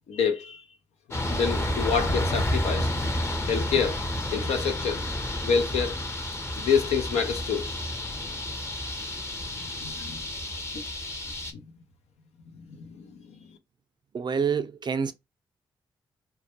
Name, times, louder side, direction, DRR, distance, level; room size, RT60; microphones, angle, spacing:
voice 1, 0.1-0.6 1.3-2.9 3.5-4.0 4.3-5.0 5.4-5.9 6.6-7.7 9.8-10.2 10.7-10.8 11.5-11.6 12.5-13.4, left 6 dB, 75° left, 0.5 m, -27 dB
sound 1, 1.1-11.5, left 1 dB, 25° left, 0.7 m, -30 dB
voice 2, 14.1-15.1, right 6 dB, 45° right, 0.4 m, -27 dB
2.2 x 2.1 x 2.8 m
supercardioid pair, 45°, 11 cm